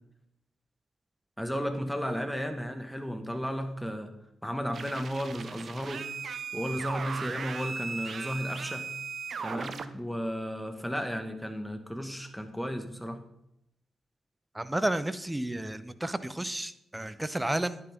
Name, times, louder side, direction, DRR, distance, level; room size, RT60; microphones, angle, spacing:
voice 1, 1.4-4.1 4.4-6.0 6.5-8.8 9.4-13.2, equal, 5° left, 6 dB, 2.0 m, -34 dB
sound 1, 4.7-9.9, right 5 dB, 60° right, 0.7 m, -37 dB
voice 2, 14.5-17.8, right 1 dB, 15° right, 14 dB, 0.9 m, -31 dB
10.5 x 9.8 x 3.8 m, 0.81 s
supercardioid pair, 40°, 0 cm